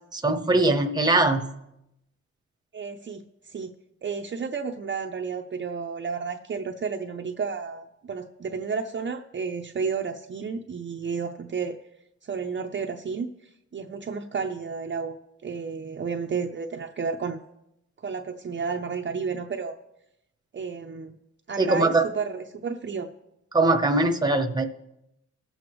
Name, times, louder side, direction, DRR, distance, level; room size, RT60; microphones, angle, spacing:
voice 1, 0.1-1.5 21.6-22.1 23.5-24.6, right 2 dB, 15° right, 4 dB, 0.9 m, -21 dB
voice 2, 2.7-3.7 4.0-11.7 12.2-15.2 15.4-17.4 18.0-19.7 20.5-21.2 21.5-23.1, right 5 dB, 40° right, 3 dB, 0.6 m, -32 dB
19.5 x 7.7 x 3.1 m, 0.86 s
wide cardioid pair, 125°, 30 cm